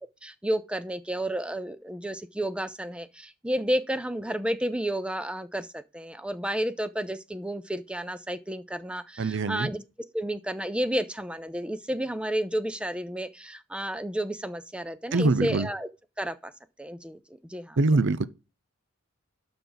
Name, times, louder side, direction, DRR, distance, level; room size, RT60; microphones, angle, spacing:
voice 1, 0.2-9.8 10.1-15.9 16.2-16.5 16.8-17.8, right 1 dB, 5° right, 0.5 m, -31 dB
voice 2, 9.2-9.7 15.1-15.7 17.8-18.3, right 3 dB, 60° right, 0.6 m, -23 dB
12.0 x 6.2 x 4.0 m
head